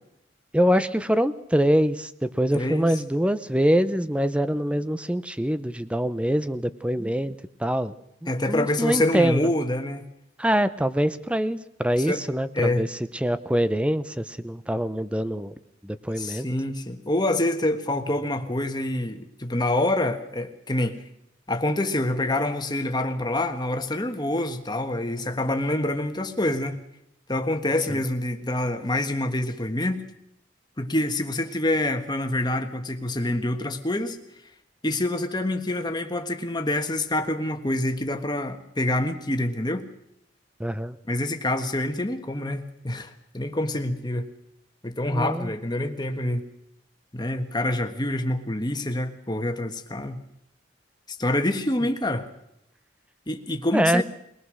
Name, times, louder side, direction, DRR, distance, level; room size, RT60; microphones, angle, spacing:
voice 1, 0.5-7.9 8.2-9.5 10.4-12.9 13.1-15.5 15.8-16.5 27.9-28.0 40.6-41.0 45.1-45.5 53.7-54.0, equal, 5° right, 14 dB, 0.7 m, -24 dB
voice 2, 2.5-3.0 8.3-10.0 11.9-12.2 12.5-12.8 16.2-21.0 21.5-26.8 27.3-30.0 30.8-34.2 34.8-39.8 41.1-44.3 44.8-46.5 47.1-50.2 51.2-52.3 53.3-54.0, left 1 dB, 25° left, 6 dB, 1.5 m, -26 dB
22.5 x 19.0 x 6.4 m, 0.78 s
head